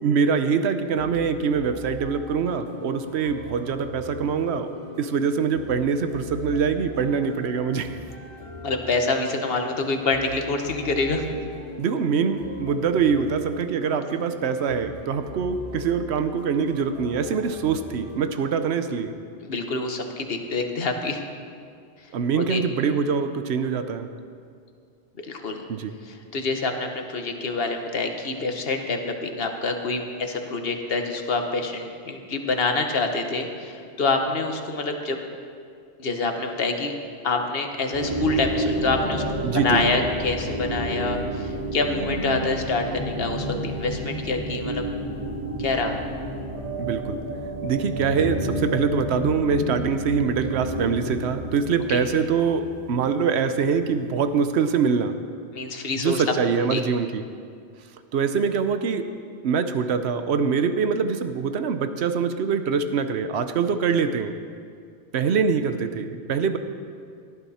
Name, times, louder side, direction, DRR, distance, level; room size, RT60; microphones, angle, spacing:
voice 1, 0.0-4.7 5.0-8.0 11.8-19.1 22.1-24.1 25.7-25.9 39.4-39.9 46.8-47.2 47.6-55.1 56.0-57.3 58.1-59.1 59.4-64.3 65.1-66.6, right 6 dB, 85° right, 9 dB, 1.0 m, -24 dB
sound 1, 0.9-18.6, left 1 dB, 60° right, 3.1 m, -41 dB
voice 2, 8.6-11.4 19.4-21.2 22.4-22.6 25.3-25.6 26.1-35.2 36.0-36.9 37.2-39.2 39.5-44.9 45.6-45.9 51.9-52.0 55.5-56.2 56.7-56.8, left 3 dB, 65° left, 4 dB, 1.4 m, -26 dB
sound 2, 37.9-54.3, right 1 dB, 45° right, 3.5 m, -30 dB
18.5 x 12.5 x 4.3 m, 2.2 s
omnidirectional pair, 1.1 m